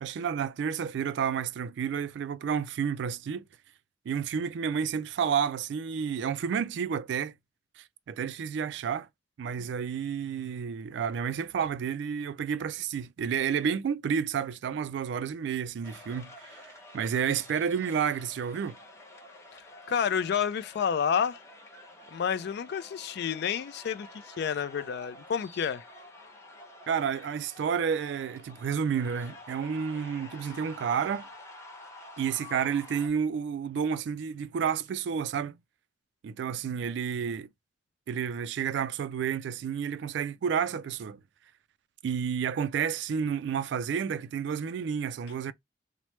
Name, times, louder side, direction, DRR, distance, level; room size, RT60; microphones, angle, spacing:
voice 1, 0.0-3.4 4.1-7.3 7.8-9.1 9.4-18.8 26.9-31.3 32.2-35.6 36.2-37.5 38.1-41.2 42.0-45.5, right 7 dB, 70° right, 0.3 m, -30 dB
sound 1, 15.8-33.1, left 1 dB, 15° left, 0.7 m, -49 dB
voice 2, 19.9-21.4 22.1-25.8, left 7 dB, 60° left, 0.3 m, -29 dB
3.0 x 2.0 x 3.0 m
head